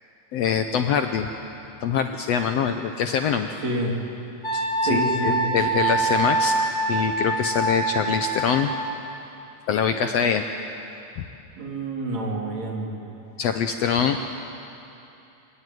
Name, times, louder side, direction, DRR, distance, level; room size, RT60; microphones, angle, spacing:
voice 1, 0.3-1.3 1.8-3.5 4.5-6.6 6.9-8.7 9.7-10.4 11.2-11.3 13.4-14.3, left 7 dB, 70° left, 6 dB, 1.6 m, -24 dB
voice 2, 3.6-4.0 4.8-5.4 11.6-13.0, right 1 dB, 60° right, -1 dB, 4.2 m, -28 dB
Wind instrument woodwind instrument, 4.4-8.7, right 2 dB, 40° left, 6.0 m, -24 dB
26.0 x 17.5 x 9.4 m, 2.8 s
omnidirectional pair, 3.6 m